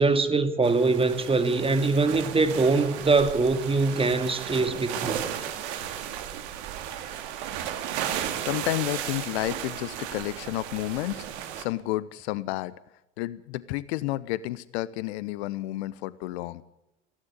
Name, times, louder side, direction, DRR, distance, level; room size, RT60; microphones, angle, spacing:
voice 1, 0.0-5.2, right 3 dB, 15° right, 2.1 m, -23 dB
sound 1, 0.6-11.6, right 10 dB, 60° right, 2.5 m, -35 dB
voice 2, 8.1-12.7 13.2-16.6, left 16 dB, 60° left, 1.0 m, -31 dB
18.0 x 16.0 x 9.7 m
figure-of-eight pair, 75°, 37 cm